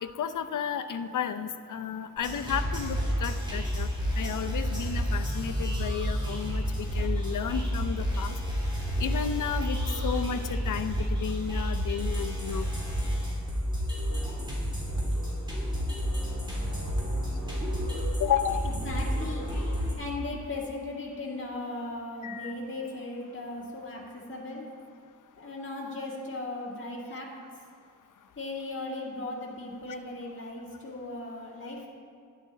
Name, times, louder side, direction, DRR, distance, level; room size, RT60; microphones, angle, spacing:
voice 1, 0.0-3.9 4.2-8.4 9.0-9.8 10.0-12.7 18.2-18.7 22.2-22.5, left 8 dB, 65° left, 9 dB, 0.6 m, -32 dB
sound 1, 2.2-19.9, equal, 15° right, 2.9 m, -30 dB
voice 2, 18.6-19.5 20.0-24.6 25.4-27.3 28.4-31.8, left 2 dB, 35° left, -4 dB, 1.9 m, -37 dB
10.5 x 10.5 x 4.0 m, 2.3 s
wide cardioid pair, 110°, 33 cm